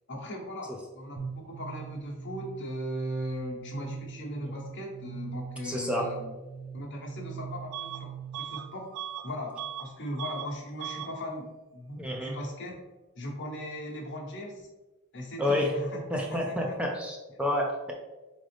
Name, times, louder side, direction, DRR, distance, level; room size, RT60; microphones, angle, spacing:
voice 1, 0.1-6.3 6.7-8.9 9.2-11.4 11.7-12.8 13.2-14.7 15.1-16.0 16.3-16.8, equal, 55° left, -1 dB, 1.0 m, -38 dB
sound 1, 1.2-8.7, right 7 dB, 40° right, 0.7 m, -42 dB
voice 2, 5.6-6.2 12.0-12.4 15.4-15.8 16.1-17.9, left 1 dB, 5° right, 0 dB, 0.4 m, -29 dB
Bus / Alarm, 7.7-8.0 8.3-9.9 10.2-10.5 10.8-11.1, right 11 dB, 80° right, 0.3 m, -38 dB
4.1 x 3.8 x 3.3 m, 1.1 s
head